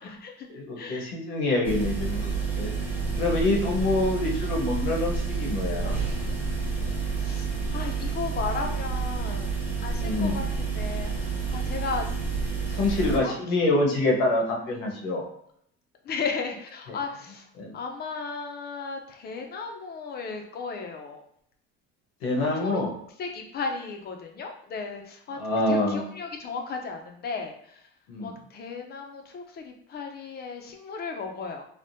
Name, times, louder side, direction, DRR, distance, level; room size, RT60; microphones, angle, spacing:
voice 1, 0.0-0.5 0.8-1.1 7.1-9.6 9.8-12.1 13.0-13.3 13.6-13.7 16.0-17.5 17.7-21.2 22.6-22.8 23.2-25.4 25.7-27.9 28.2-31.6, left 4 dB, 35° left, 3 dB, 0.5 m, -35 dB
voice 2, 0.5-2.7 3.2-6.0 10.0-10.4 12.7-15.2 17.6-17.8 22.2-22.9 25.4-26.0 28.1-28.3, left 2 dB, 85° left, 0 dB, 1.0 m, -26 dB
sound 1, 1.6-13.2, right 5 dB, 5° right, 0.8 m, -29 dB
3.5 x 2.1 x 2.6 m, 0.68 s
cardioid pair, 120°, 29 cm